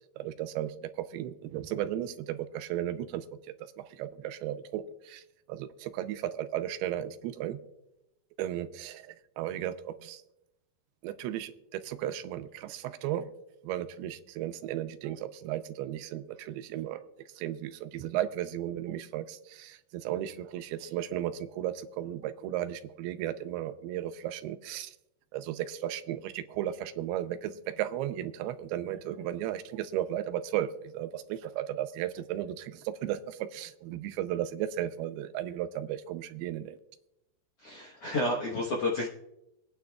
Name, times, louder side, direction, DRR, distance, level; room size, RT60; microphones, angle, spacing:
voice 1, 0.2-3.3 3.8-5.2 5.5-7.6 8.4-10.2 11.0-13.3 13.6-17.0 17.4-25.0 25.3-36.8, right 12 dB, 85° right, 10 dB, 2.6 m, -35 dB
voice 2, 37.6-39.1, left 1 dB, 70° left, -3 dB, 1.4 m, -30 dB
25.5 x 9.4 x 2.3 m, 0.90 s
omnidirectional pair, 4.5 m